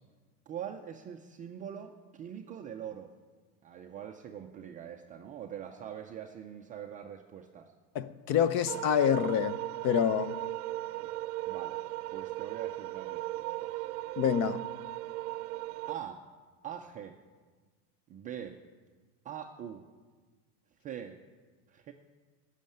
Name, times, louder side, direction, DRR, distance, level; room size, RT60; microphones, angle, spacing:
voice 1, 0.5-3.1 3.6-7.7 11.0-11.1 11.5-11.8 12.1-13.9 15.9-16.2 16.6-17.2 18.1-18.6 19.2-19.8 20.8-21.2 21.7-21.9, right 9 dB, 20° right, 0.3 m, -43 dB
voice 2, 7.9-10.3 14.2-14.6, left 9 dB, 40° left, 0.6 m, -27 dB
sound 1, 8.7-16.0, right 17 dB, 60° right, 0.6 m, -37 dB
14.5 x 6.5 x 9.2 m
supercardioid pair, 125°, 47 cm